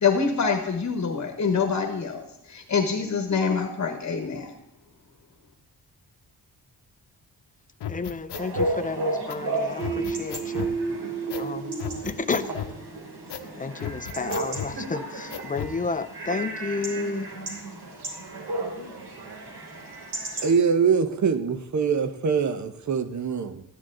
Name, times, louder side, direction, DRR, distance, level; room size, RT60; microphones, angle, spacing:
voice 1, 0.0-4.5, left 5 dB, 45° left, 1.1 m, -25 dB
sound 1, 7.8-8.7 9.3-9.4 9.8-10.8 11.3-11.5 11.8-12.8 13.3-13.5 13.8-14.8 15.3-15.8, left 9 dB, 90° left, 0.9 m, -34 dB
voice 2, 7.9-10.7 11.4-11.7 12.1-12.5 13.5-17.3, left 4 dB, 20° left, 0.5 m, -31 dB
Chatter / Bark / Livestock farm animals working animals, 8.3-20.5, right 2 dB, 75° right, 3.2 m, -34 dB
sound 2, 9.8-13.4, right 5 dB, 20° right, 1.1 m, -32 dB
voice 3, 20.4-23.6, right 6 dB, 45° right, 0.9 m, -23 dB
13.0 x 10.0 x 3.8 m
wide cardioid pair, 155°, 40 cm